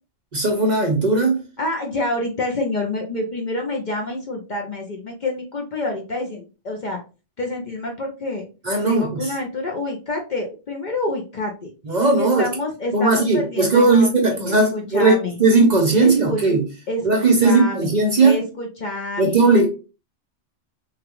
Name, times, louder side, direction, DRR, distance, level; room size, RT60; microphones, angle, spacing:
voice 1, 0.3-1.4 8.6-9.3 11.8-12.5 12.9-16.7 17.0-18.4 19.2-19.7, right 3 dB, 45° right, 2 dB, 0.6 m, -17 dB
voice 2, 1.6-7.0 7.4-8.4 8.9-11.7 12.2-15.4 16.0-16.4 16.9-19.4, left 2 dB, 50° left, 1 dB, 0.6 m, -28 dB
3.3 x 2.3 x 2.9 m, 0.32 s
omnidirectional pair, 1.2 m